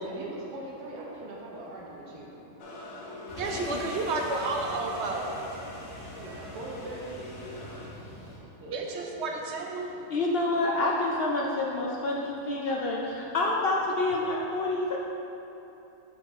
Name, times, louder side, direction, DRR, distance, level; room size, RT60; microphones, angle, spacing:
voice 1, 0.0-2.3 6.2-7.7 8.6-9.2, right 2 dB, 85° right, -3 dB, 1.4 m, -41 dB
sound 1, 2.6-7.9, left 1 dB, 85° left, 1.4 m, -44 dB
sound 2, 3.3-8.4, equal, 50° left, 1.3 m, -43 dB
voice 2, 3.4-5.3 8.7-9.9, right 3 dB, 60° right, 1 dB, 0.8 m, -31 dB
voice 3, 10.1-15.0, left 2 dB, 70° left, -2 dB, 0.5 m, -28 dB
5.8 x 4.9 x 4.0 m, 2.9 s
omnidirectional pair, 1.6 m